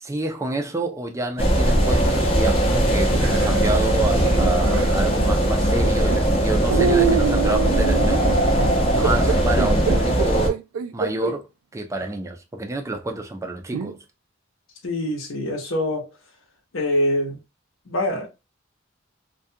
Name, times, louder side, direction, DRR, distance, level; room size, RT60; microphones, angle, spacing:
voice 1, 0.0-3.2 3.4-8.2 8.9-10.6 10.9-14.0, right 2 dB, 15° right, 0.4 m, -28 dB
sound 1, 1.4-10.5, right 1 dB, 30° left, 0.7 m, -19 dB
sound 2, 3.1-5.0 5.8-6.2 6.7-11.4 12.0-12.1 13.7-13.9, right 6 dB, 80° right, 0.3 m, -26 dB
voice 2, 14.8-16.1 16.7-17.4 17.9-18.3, left 1 dB, 70° left, 0.9 m, -24 dB
2.3 x 2.2 x 2.6 m
head